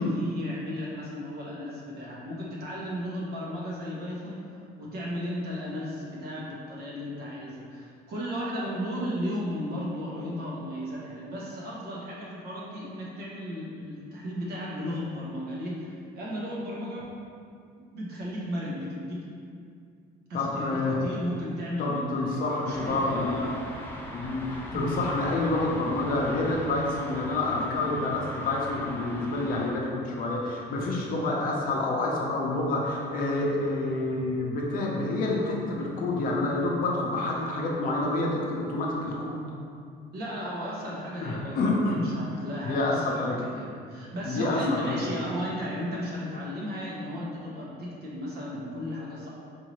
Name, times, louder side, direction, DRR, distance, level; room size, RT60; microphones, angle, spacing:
voice 1, 0.0-4.4 4.8-17.1 17.8-19.2 20.3-23.5 24.7-24.9 40.1-49.3, equal, 65° right, -5 dB, 1.0 m, -35 dB
voice 2, 20.3-21.0 21.8-23.4 24.1-39.5 41.2-42.0 42.6-43.4 44.3-45.0, left 2 dB, 50° left, -2 dB, 0.7 m, -28 dB
sound 1, 22.7-29.7, left 1 dB, 10° left, 0.4 m, -40 dB
4.7 x 2.7 x 3.0 m, 2.3 s
cardioid pair, 145°, 18 cm